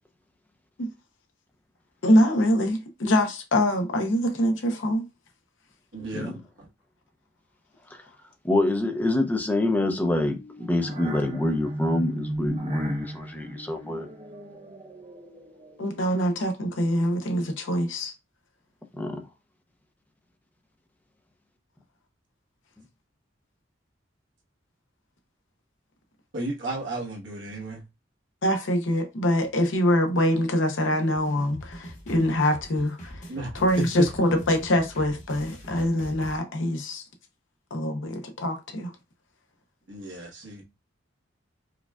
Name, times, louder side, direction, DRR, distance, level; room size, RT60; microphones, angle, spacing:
voice 1, 2.0-5.0 15.8-18.1 28.4-33.3 33.5-37.0 37.7-38.9, equal, 80° left, 0.7 m, -24 dB
voice 2, 5.9-6.3 26.3-27.8 33.3-33.5 34.0-34.1 39.9-40.6, right 2 dB, 70° right, 1.2 m, -33 dB
voice 3, 8.4-14.1 18.9-19.2, left 1 dB, 10° left, 0.6 m, -26 dB
sound 1, 9.8-16.2, right 1 dB, 35° right, 0.6 m, -36 dB
sound 2, 30.8-36.4, equal, 40° left, 1.2 m, -43 dB
4.8 x 2.3 x 2.3 m
head